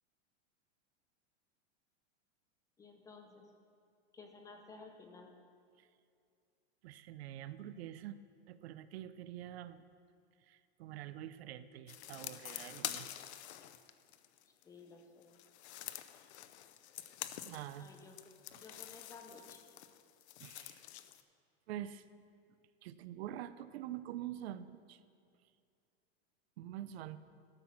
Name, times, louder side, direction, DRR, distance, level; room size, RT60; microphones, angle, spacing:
voice 1, 2.8-3.5 4.1-5.3 14.6-15.3 17.8-19.6, left 4 dB, 10° left, 4 dB, 0.5 m, -55 dB
voice 2, 6.8-8.2 8.5-9.9 10.5-13.1 17.4-17.9 20.4-20.8 21.7-22.0 22.8-25.0 26.6-27.2, right 12 dB, 70° right, 14 dB, 0.6 m, -46 dB
sound 1, 11.9-14.6 15.2-21.2, left 12 dB, 90° left, 0.7 m, -47 dB
12.5 x 5.9 x 7.2 m, 2.3 s
supercardioid pair, 165°, 33 cm